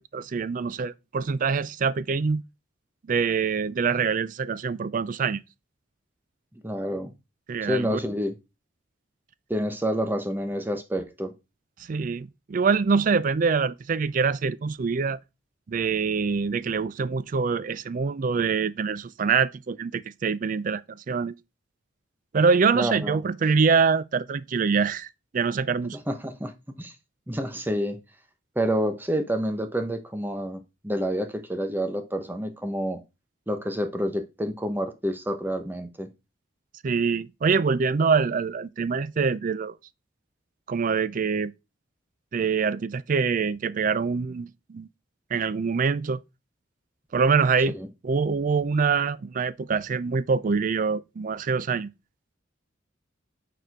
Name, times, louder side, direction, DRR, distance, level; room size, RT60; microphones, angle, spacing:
voice 1, 0.0-2.4 3.1-5.4 7.5-8.0 11.9-15.2 15.7-20.8 21.1-21.3 22.3-25.1 25.3-26.0 36.8-39.7 40.7-41.5 42.3-44.9 45.3-46.2 47.1-47.7 48.0-51.9, right 5 dB, 40° right, 0.4 m, -24 dB
voice 2, 6.6-7.1 7.6-8.3 9.5-11.3 22.7-23.2 25.9-26.9 27.3-28.0 28.6-33.0 33.5-36.1 47.7-47.9, equal, 10° right, 0.8 m, -28 dB
6.6 x 4.3 x 4.6 m
head